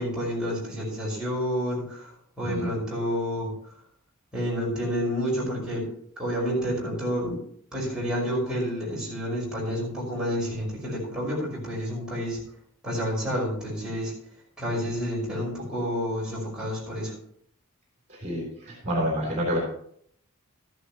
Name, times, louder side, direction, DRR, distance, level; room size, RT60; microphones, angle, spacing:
voice 1, 0.0-2.1 2.4-3.5 4.3-5.9 6.2-7.4 7.7-12.4 12.8-14.1 14.6-17.1, equal, 5° right, -5 dB, 5.6 m, -29 dB
voice 2, 18.1-19.6, equal, 35° right, -1 dB, 3.4 m, -28 dB
14.0 x 11.5 x 3.1 m, 0.64 s
head